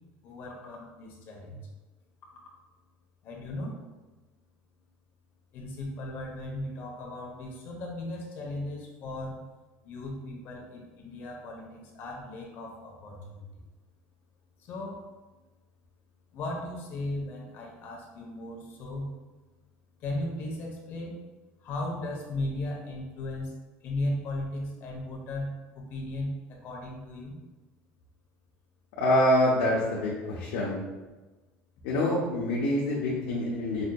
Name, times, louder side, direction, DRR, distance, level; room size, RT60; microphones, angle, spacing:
voice 1, 0.2-1.6 3.2-3.8 5.5-9.4 9.8-13.5 14.6-15.1 16.3-19.1 20.0-21.1 21.6-23.5 23.8-27.4, left 1 dB, 45° left, 0 dB, 0.8 m, -36 dB
voice 2, 29.0-30.8 31.8-33.8, left 1 dB, 90° left, -4 dB, 0.7 m, -26 dB
5.0 x 2.6 x 2.2 m, 1.2 s
cardioid pair, 155°, 5 cm